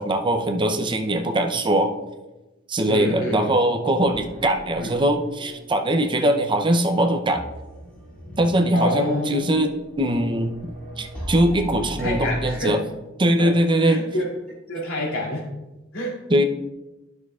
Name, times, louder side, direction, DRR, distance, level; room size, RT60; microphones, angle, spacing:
voice 1, 0.0-1.9 2.7-7.4 8.4-10.5 11.0-12.8 13.2-14.1 16.3-16.4, right 1 dB, 25° right, 5 dB, 0.6 m, -21 dB
voice 2, 2.9-3.6 4.8-4.9 8.7-9.5 12.0-12.9 13.4-13.5 13.8-14.3 14.7-15.5 15.9-16.2, left 1 dB, 90° left, -3 dB, 2.8 m, -27 dB
sound 1, 4.0-12.3, equal, 5° left, 2.1 m, -39 dB
12.0 x 6.2 x 2.4 m, 1.0 s
head